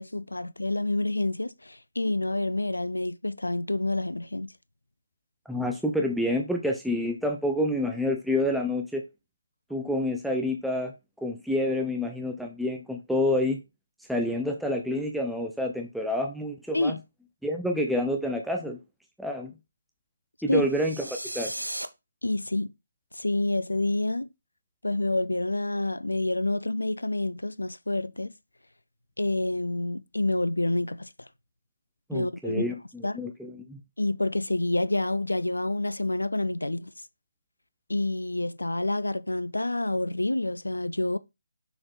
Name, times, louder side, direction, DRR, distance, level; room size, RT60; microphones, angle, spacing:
voice 1, 0.0-4.5 16.7-17.0 20.5-20.7 22.2-22.7 23.1-24.3 24.8-28.3 29.2-31.3 32.1-32.6 33.0-33.2 34.0-36.9 37.9-41.2, left 2 dB, 80° left, 0.6 m, -28 dB
voice 2, 5.5-9.0 9.7-13.6 14.1-17.0 17.4-18.8 19.2-19.5 20.4-21.1 21.3-21.5 32.1-33.8, left 1 dB, ahead, 0.6 m, -28 dB
sound 1, 20.7-21.9, right 1 dB, 90° right, 0.8 m, -35 dB
6.3 x 4.0 x 4.6 m
figure-of-eight pair, 150°, 0 cm